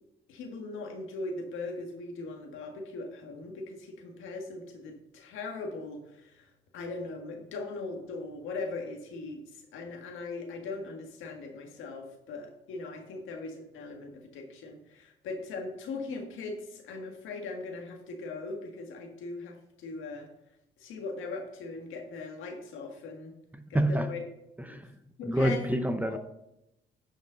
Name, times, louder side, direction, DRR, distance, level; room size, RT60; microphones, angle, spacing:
voice 1, 0.3-20.3 20.8-23.3 23.7-24.2 24.7-24.8 25.2-25.6 26.1-26.2, left 3 dB, 85° left, 3 dB, 1.7 m, -39 dB
voice 2, 23.5-24.1 24.6-25.0 25.2-26.2, right 1 dB, 10° right, 8 dB, 0.8 m, -28 dB
10.0 x 5.3 x 3.9 m, 0.85 s
cardioid pair, 90°, 20 cm